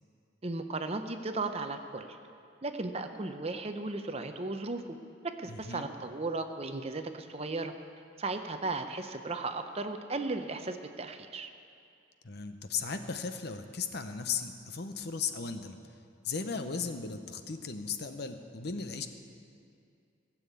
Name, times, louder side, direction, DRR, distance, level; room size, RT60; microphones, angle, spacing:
voice 1, 0.4-2.1 2.6-4.8 5.2-7.7 8.2-11.5, right 3 dB, 30° right, 7 dB, 0.6 m, -35 dB
voice 2, 5.5-5.9 12.2-15.8 16.2-19.1, left 5 dB, 55° left, 8 dB, 0.8 m, -36 dB
16.0 x 7.3 x 8.3 m, 2.4 s
head